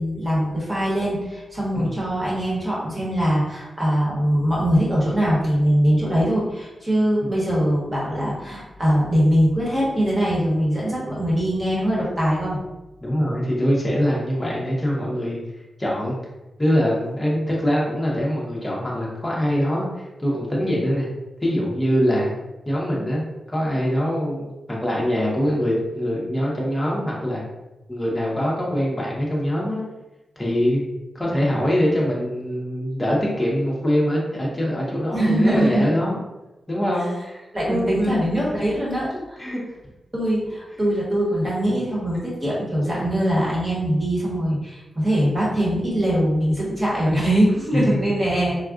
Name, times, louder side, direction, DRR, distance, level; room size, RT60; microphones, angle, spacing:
voice 1, 0.0-12.6 35.1-35.9 37.5-39.5 40.1-48.6, equal, 20° right, -6 dB, 1.1 m, -22 dB
voice 2, 13.0-15.4 15.8-16.1 16.6-21.1 21.4-22.3 22.7-27.5 27.9-29.8 30.4-30.8 31.1-36.2 36.7-37.4 37.7-38.2 39.1-39.6 47.7-48.0, equal, 15° left, -4 dB, 0.7 m, -23 dB
3.5 x 2.2 x 2.4 m, 1.0 s
wide cardioid pair, 140°, 0 cm